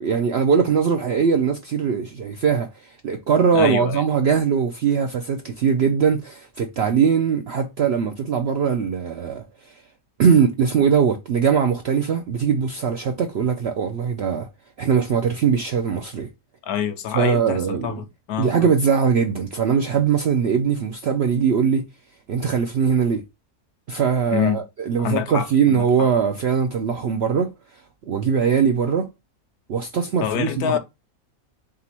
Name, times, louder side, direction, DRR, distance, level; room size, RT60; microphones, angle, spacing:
voice 1, 0.0-9.8 10.2-14.5 14.8-16.3 17.1-18.0 18.4-21.8 22.3-23.2 23.9-29.1 29.7-30.8, right 6 dB, 70° right, 0.6 m, -21 dB
voice 2, 3.5-4.0 16.6-18.7 24.3-24.6 25.0-25.8 30.2-30.8, left 9 dB, 75° left, 1.1 m, -26 dB
4.0 x 3.7 x 2.8 m
omnidirectional pair, 1.7 m